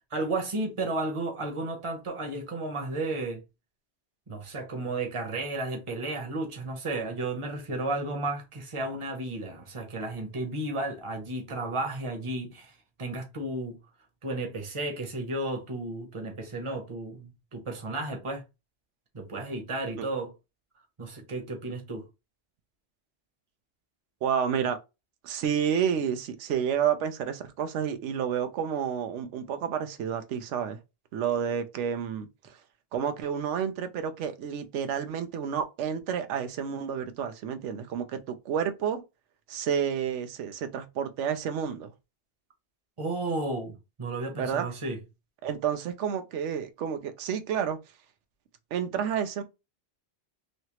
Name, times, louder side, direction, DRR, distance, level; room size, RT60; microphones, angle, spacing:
voice 1, 0.1-3.4 4.3-12.7 13.0-13.8 14.2-18.4 19.1-20.3 21.0-22.0 43.0-45.0, right 2 dB, 30° right, 0.9 m, -33 dB
voice 2, 24.2-24.8 25.2-30.8 31.1-32.6 32.9-39.0 39.5-41.9 44.4-44.7 45.4-47.8 48.7-49.4, right 8 dB, 90° right, 0.9 m, -30 dB
3.2 x 2.8 x 2.9 m
omnidirectional pair, 1.2 m